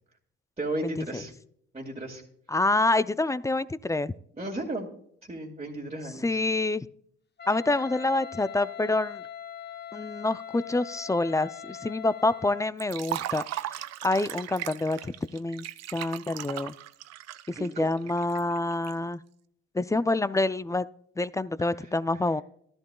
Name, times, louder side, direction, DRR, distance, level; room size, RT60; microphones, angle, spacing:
voice 1, 0.6-1.3 1.7-2.2 4.4-4.9 5.3-6.4 17.6-17.9, right 1 dB, 20° right, -3 dB, 2.0 m, -34 dB
voice 2, 2.5-4.1 6.2-6.9 7.5-9.2 9.9-13.8 14.0-15.7 15.9-16.7 17.5-19.2 19.7-20.9 21.2-22.4, left 2 dB, 10° left, 16 dB, 0.4 m, -27 dB
Wind instrument woodwind instrument, 7.4-12.7, left 8 dB, 35° left, 0.7 m, -41 dB
Liquid, 12.8-18.9, right 13 dB, 60° right, 0.5 m, -37 dB
12.5 x 11.5 x 2.2 m, 0.68 s
supercardioid pair, 60°, 29 cm